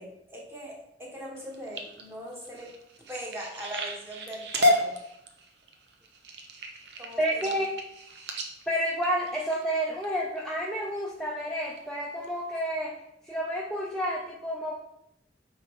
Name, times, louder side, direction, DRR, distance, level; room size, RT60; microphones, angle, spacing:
voice 1, 0.0-2.7 3.1-5.0 7.0-7.5, equal, 15° right, -3 dB, 1.4 m, -40 dB
sound 1, 1.4-10.1 10.6-11.0 11.4-11.8 12.2-12.3 12.6-12.7, left 1 dB, 70° right, 0.8 m, -32 dB
voice 2, 7.2-7.7 8.7-13.0 13.3-14.7, equal, 5° left, -3 dB, 0.6 m, -30 dB
8.6 x 3.5 x 3.6 m, 0.82 s
head